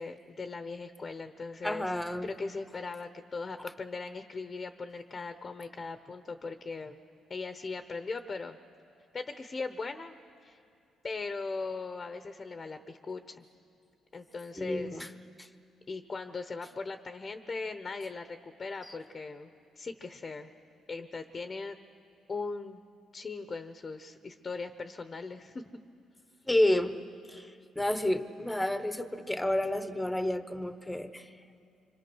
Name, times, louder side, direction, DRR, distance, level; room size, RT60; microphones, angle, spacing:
voice 1, 0.0-1.8 2.2-7.0 7.3-8.6 9.1-10.2 10.4-10.6 11.0-13.4 14.1-15.1 15.9-19.5 19.8-20.5 20.9-21.8 22.3-22.8 23.1-25.8, left 4 dB, 35° left, 8 dB, 1.0 m, -39 dB
voice 2, 1.6-2.3 14.6-15.1 15.4-15.5 26.5-27.0 27.3-31.3, left 1 dB, 10° left, 10 dB, 1.1 m, -30 dB
25.5 x 25.5 x 6.3 m, 2.6 s
cardioid pair, 90°, 0 cm